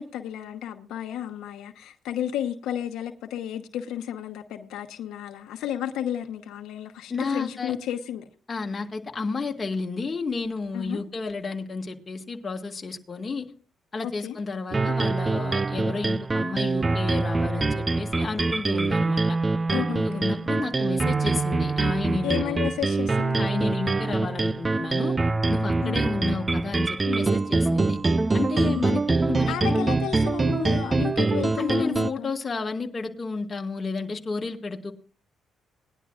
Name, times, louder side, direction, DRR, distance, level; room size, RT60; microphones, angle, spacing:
voice 1, 0.0-8.2 10.7-11.0 14.0-14.4 19.7-20.2 22.2-23.4 25.8-26.0 28.6-28.9 29.5-32.3, left 10 dB, 85° left, 1.0 m, -32 dB
voice 2, 7.1-7.7 8.5-13.5 13.9-19.4 19.7-22.6 23.4-25.2 25.5-28.0 28.3-29.9 31.6-34.9, left 4 dB, 30° left, 1.9 m, -31 dB
sound 1, 14.7-32.1, right 3 dB, 25° right, 0.4 m, -24 dB
19.5 x 11.0 x 2.5 m
cardioid pair, 90°, 0 cm